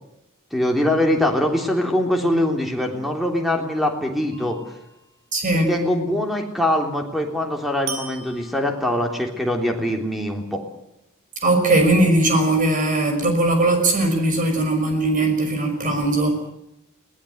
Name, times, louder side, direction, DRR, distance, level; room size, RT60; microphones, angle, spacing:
voice 1, 0.5-4.6 5.5-10.6, left 1 dB, ahead, 2 dB, 3.4 m, -23 dB
sound 1, 4.3-5.0 7.9-9.3, right 4 dB, 65° right, 5.7 m, -37 dB
voice 2, 5.3-5.7 11.4-16.4, right 2 dB, 40° right, 5 dB, 5.8 m, -19 dB
22.0 x 18.5 x 8.0 m, 0.83 s
head